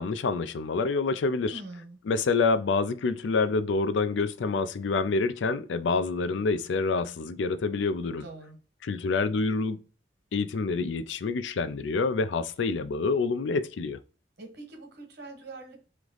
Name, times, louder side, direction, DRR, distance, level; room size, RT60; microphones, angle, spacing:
voice 1, 0.0-1.6 2.1-8.3 8.8-9.8 10.3-14.0, left 4 dB, 85° left, 0.4 m, -27 dB
voice 2, 1.5-2.0 8.2-8.6 14.4-15.8, right 2 dB, 65° right, 1.4 m, -44 dB
3.2 x 3.0 x 3.8 m
head